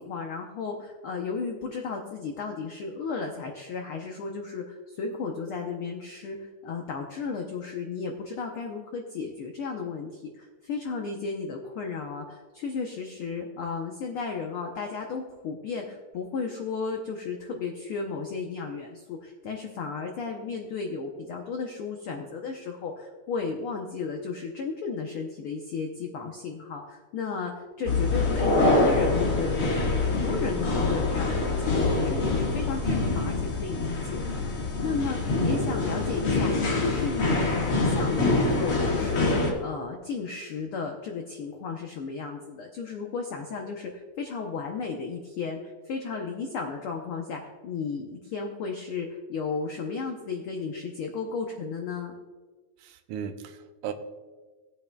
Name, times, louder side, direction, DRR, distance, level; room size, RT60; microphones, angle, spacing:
voice 1, 0.0-6.4 6.6-52.1, left 5 dB, 85° left, 2 dB, 1.2 m, -34 dB
sound 1, 27.9-39.5, left 2 dB, 45° left, 2.2 m, -25 dB
voice 2, 52.8-53.9, right 8 dB, 85° right, 6 dB, 2.2 m, -37 dB
18.0 x 8.6 x 2.3 m, 1.3 s
omnidirectional pair, 3.6 m